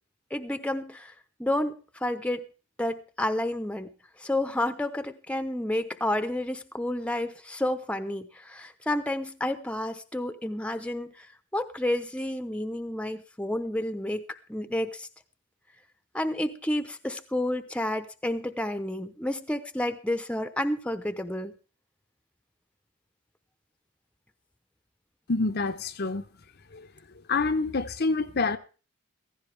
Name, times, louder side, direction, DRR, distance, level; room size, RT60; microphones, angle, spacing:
voice 1, 0.3-1.1 1.4-2.4 2.8-3.9 4.2-11.3 11.5-14.2 14.5-15.1 16.1-21.5, left 1 dB, 5° left, 0.8 m, -30 dB
voice 2, 25.3-26.2 26.7-26.9 27.3-28.6, left 3 dB, 50° left, 0.8 m, -27 dB
16.0 x 15.0 x 3.4 m
head